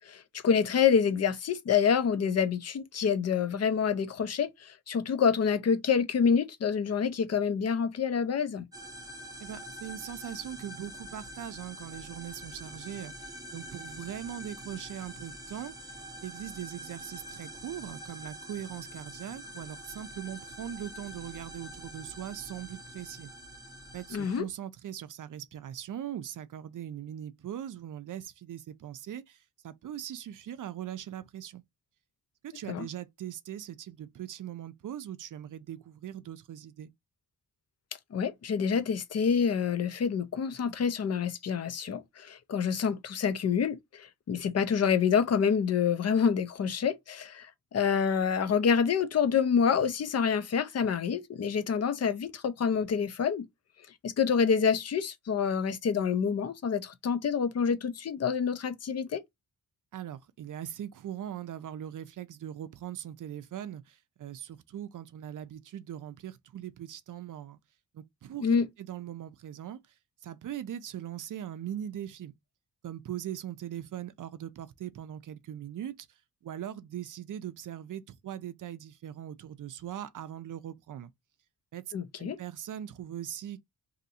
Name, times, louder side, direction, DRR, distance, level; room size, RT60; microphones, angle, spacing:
voice 1, 0.1-8.6 24.1-24.4 32.7-32.9 38.1-47.5 47.7-53.5 54.0-59.2 68.4-68.7 81.9-82.4, left 6 dB, 45° left, 0.5 m, -27 dB
sound 1, 8.7-24.4, right 1 dB, 10° right, 0.6 m, -45 dB
voice 2, 9.4-23.3 23.9-29.4 29.6-31.6 32.4-36.9 59.9-67.6 67.9-69.8 70.2-72.3 72.8-76.1 76.4-81.1 81.7-81.8 82.2-83.6, right 10 dB, 60° right, 0.5 m, -40 dB
2.7 x 2.6 x 4.1 m
wide cardioid pair, 155°, 36 cm